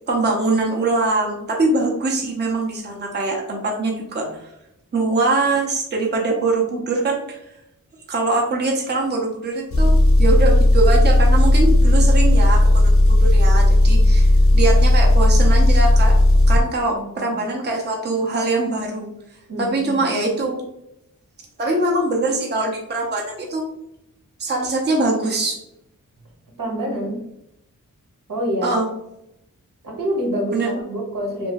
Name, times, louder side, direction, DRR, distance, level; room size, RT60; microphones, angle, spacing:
voice 1, 0.1-4.5 4.9-7.4 8.1-9.9 10.2-16.1 16.5-19.1 19.6-20.6 21.6-23.6 24.4-25.6 28.6-28.9 30.5-30.7, right 2 dB, 35° right, -1 dB, 0.6 m, -22 dB
Engine, 9.7-16.6, left 1 dB, 45° left, 0.6 m, -14 dB
voice 2, 16.8-17.5 19.5-20.1 26.6-27.2 28.3-28.8 29.8-31.5, equal, 75° right, -1 dB, 1.0 m, -27 dB
2.7 x 2.5 x 2.9 m, 0.82 s
wide cardioid pair, 105°, 32 cm